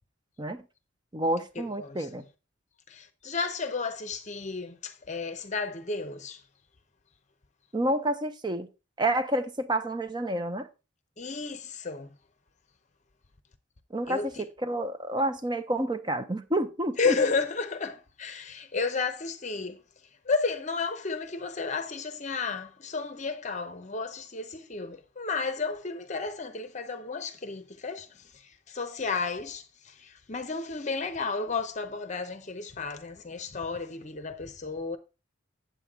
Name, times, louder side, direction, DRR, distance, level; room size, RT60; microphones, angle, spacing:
voice 1, 1.1-2.2 7.7-8.7 9.0-10.7 13.9-14.3 14.6-17.2, right 1 dB, 20° right, 0.7 m, -29 dB
voice 2, 1.8-2.2 2.9-6.4 11.2-12.1 14.1-14.4 17.0-19.8 20.2-35.0, left 4 dB, 35° left, 0.7 m, -32 dB
8.2 x 7.6 x 3.6 m
head